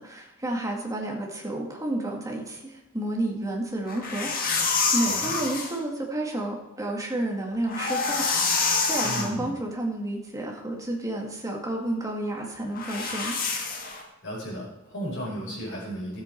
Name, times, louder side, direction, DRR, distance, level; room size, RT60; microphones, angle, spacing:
voice 1, 0.0-4.3 4.9-13.4, right 1 dB, 15° right, -1 dB, 2.1 m, -31 dB
sound 1, 3.9-5.8 7.5-9.3 12.8-14.0, left 4 dB, 45° left, 1.7 m, -27 dB
voice 2, 5.0-5.3 9.0-9.5 14.2-16.2, equal, 60° left, -4 dB, 5.2 m, -34 dB
14.0 x 8.2 x 4.6 m, 0.92 s
head